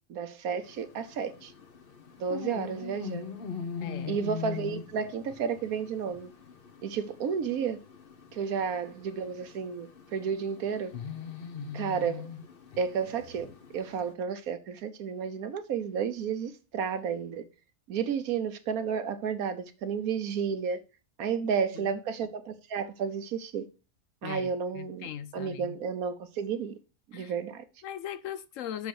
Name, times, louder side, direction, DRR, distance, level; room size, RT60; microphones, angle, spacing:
voice 1, 0.1-1.5 2.2-3.3 4.1-6.3 6.8-7.8 8.3-10.9 11.7-12.3 12.8-13.5 13.7-17.4 17.9-20.8 21.2-23.7 24.2-26.8 27.1-27.6, right 6 dB, 75° right, 1.3 m, -32 dB
sound 1, 0.6-14.1, left 6 dB, 45° left, 1.0 m, -42 dB
voice 2, 3.8-4.2 21.8-21.9 24.2-25.8 27.1-27.3 27.8-28.9, left 9 dB, 70° left, 0.9 m, -39 dB
6.1 x 5.1 x 6.5 m
omnidirectional pair, 1.6 m